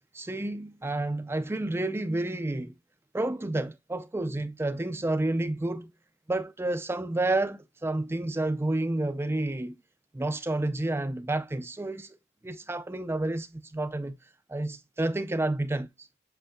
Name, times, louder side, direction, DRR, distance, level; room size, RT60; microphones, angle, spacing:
voice 1, 0.1-2.7 3.1-5.9 6.3-9.8 10.1-12.2 12.4-14.2 14.5-16.1, right 2 dB, 10° right, 0.4 m, -30 dB
7.8 x 6.5 x 2.2 m
head